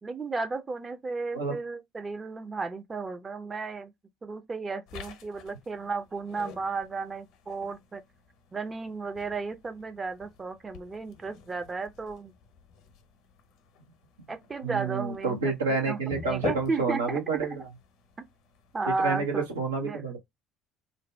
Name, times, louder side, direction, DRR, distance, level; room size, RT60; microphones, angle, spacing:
voice 1, 0.0-3.9 4.2-8.0 8.5-12.3 14.3-17.2 17.5-17.6 18.7-19.4 19.8-20.0, right 4 dB, 25° right, 0.6 m, -34 dB
sound 1, 4.9-19.6, left 6 dB, 60° left, 0.7 m, -47 dB
voice 2, 14.6-17.7 19.0-20.2, right 4 dB, 80° right, 0.7 m, -29 dB
2.6 x 2.1 x 3.2 m
figure-of-eight pair, 55°, 0 cm